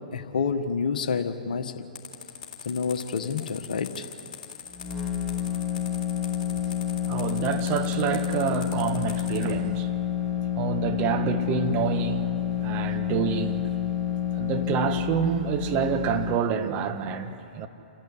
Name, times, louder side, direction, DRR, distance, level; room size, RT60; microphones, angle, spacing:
voice 1, 0.1-1.8 2.6-4.1 6.5-6.6, left 5 dB, 65° left, 1.4 m, -28 dB
sound 1, 2.0-9.5, left 8 dB, 50° left, 3.6 m, -41 dB
sound 2, 4.7-16.4, left 9 dB, 5° left, 3.4 m, -29 dB
voice 2, 7.0-9.9 10.6-13.7 14.3-17.7, right 7 dB, 35° right, 1.5 m, -28 dB
28.5 x 11.5 x 9.9 m
figure-of-eight pair, 110°, 5 cm